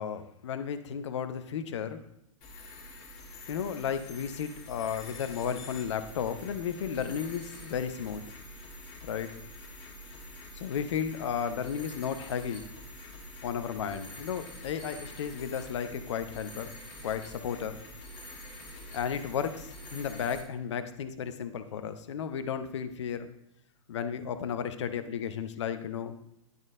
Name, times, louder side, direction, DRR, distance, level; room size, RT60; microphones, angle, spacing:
voice 1, 0.0-2.0 3.5-8.3 9.0-9.3 10.5-12.6 13.4-16.7 17.0-17.8 18.9-23.3 23.9-26.1, left 7 dB, 60° left, 10 dB, 0.8 m, -34 dB
sound 1, 2.4-20.4, left 1 dB, 30° left, 2.1 m, -46 dB
10.5 x 4.1 x 3.7 m, 0.80 s
figure-of-eight pair, 110°, 17 cm